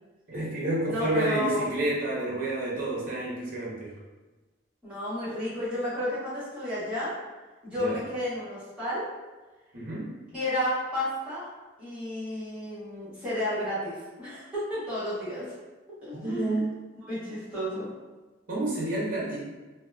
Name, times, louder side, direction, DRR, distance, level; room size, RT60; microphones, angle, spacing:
voice 1, 0.3-3.9 7.8-8.0 9.7-10.2 16.1-16.7 18.5-19.4, right 2 dB, 45° right, -5 dB, 0.7 m, -30 dB
voice 2, 0.9-1.8 4.8-7.1 7.6-9.0 10.3-11.5 11.8-15.5 16.2-16.7 17.1-17.9, left 1 dB, 5° right, -14 dB, 1.0 m, -31 dB
2.7 x 2.1 x 2.3 m, 1.2 s
head